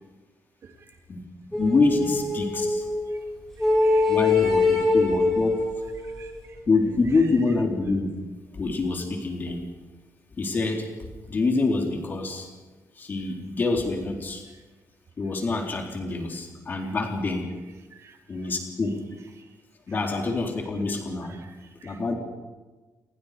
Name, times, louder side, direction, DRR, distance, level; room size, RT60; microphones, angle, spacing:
voice 1, 1.1-2.9 4.1-5.6 6.7-8.1 8.5-9.6 10.4-12.5 13.0-14.4 15.2-17.5 18.3-19.0 19.9-21.4 21.8-22.1, left 3 dB, 35° left, 2 dB, 3.9 m, -26 dB
sound 1, 1.5-3.1 3.6-6.4, left 3 dB, 5° left, 7.2 m, -23 dB
voice 2, 3.6-4.1 4.6-4.8 6.0-6.3 17.9-18.2 19.4-19.5 21.3-22.0, right 6 dB, 50° right, 4 dB, 3.2 m, -51 dB
29.5 x 22.5 x 5.1 m, 1.3 s
wide cardioid pair, 170°, 6 cm